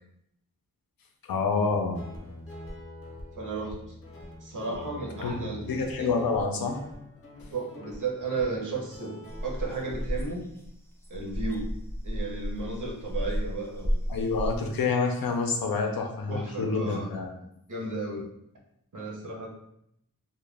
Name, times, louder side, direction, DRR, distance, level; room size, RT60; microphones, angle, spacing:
voice 1, 1.3-2.0 5.2-5.3 5.7-6.8 14.1-17.3, left 4 dB, 80° left, 3 dB, 0.5 m, -27 dB
Guitar, 1.7-10.0, left 1 dB, 40° left, 0.7 m, -45 dB
voice 2, 3.4-3.7 4.4-6.1 7.5-10.5 11.1-11.7 12.0-14.0 16.3-17.1 17.7-18.2 18.9-19.5, right 3 dB, 60° right, -1 dB, 0.7 m, -34 dB
sound 1, 9.3-14.6, equal, 10° left, 0.3 m, -32 dB
2.1 x 2.1 x 3.2 m, 0.77 s
wide cardioid pair, 80°, 35 cm